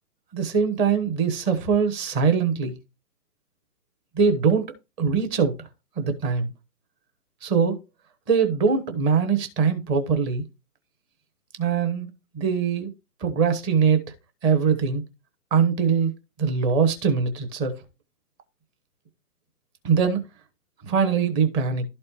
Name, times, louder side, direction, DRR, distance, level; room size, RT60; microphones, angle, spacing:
voice 1, 0.3-2.7 4.1-5.7 6.0-6.5 7.4-7.8 8.3-10.4 11.6-12.1 12.3-12.9 13.2-14.0 14.4-15.0 15.5-16.1 16.4-17.7 19.8-20.2 20.8-21.8, right 6 dB, 10° right, 0.8 m, -22 dB
12.0 x 4.3 x 4.4 m
figure-of-eight pair, 130°, 46 cm